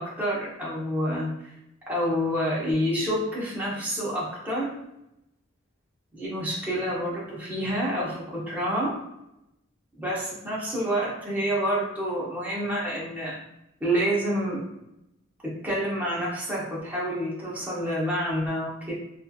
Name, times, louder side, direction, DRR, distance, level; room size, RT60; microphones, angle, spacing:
voice 1, 0.0-1.5 1.9-4.7 6.1-9.0 10.0-13.4 13.8-14.6 15.4-18.9, equal, 10° right, -7 dB, 0.8 m, -28 dB
3.0 x 2.4 x 2.3 m, 0.86 s
head